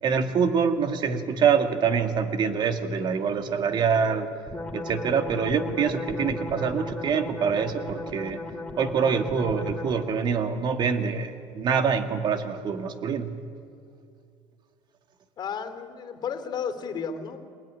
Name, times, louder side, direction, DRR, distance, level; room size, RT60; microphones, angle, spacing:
voice 1, 0.0-4.3 4.7-8.4 8.8-13.3, right 6 dB, 45° right, 7 dB, 2.2 m, -25 dB
sound 1, 4.5-10.2, left 2 dB, 10° left, 2.8 m, -36 dB
voice 2, 15.4-17.4, left 6 dB, 40° left, 6 dB, 3.2 m, -33 dB
24.0 x 19.5 x 9.9 m, 2.3 s
supercardioid pair, 105°, 11 cm